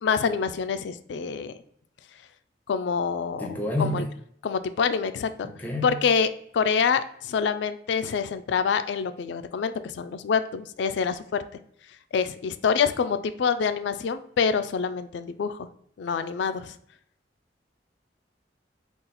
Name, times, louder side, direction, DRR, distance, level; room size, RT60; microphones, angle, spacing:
voice 1, 0.0-1.5 2.7-3.5 3.8-4.0 4.4-5.5 5.8-11.4 12.1-15.7 16.0-16.7, left 6 dB, 70° left, 11 dB, 0.3 m, -26 dB
voice 2, 3.4-4.1 5.4-6.0, left 1 dB, 10° left, 2 dB, 0.6 m, -29 dB
3.9 x 2.4 x 4.1 m, 0.68 s
head